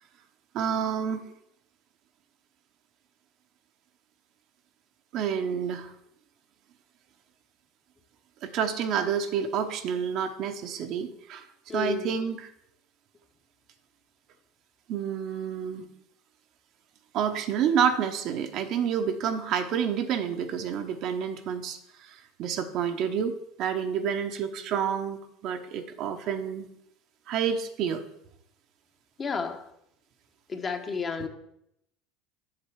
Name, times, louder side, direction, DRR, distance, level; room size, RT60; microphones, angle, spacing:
voice 1, 0.5-1.2 5.1-5.9 8.4-11.5 11.7-12.5 14.9-15.8 17.1-26.7 27.3-28.0, right 7 dB, 60° right, 6 dB, 0.9 m, -29 dB
voice 2, 11.7-12.2 29.2-29.7 30.5-31.3, left 5 dB, 30° left, 5 dB, 1.1 m, -31 dB
7.6 x 6.7 x 4.7 m, 0.76 s
hypercardioid pair, 80°, 0 cm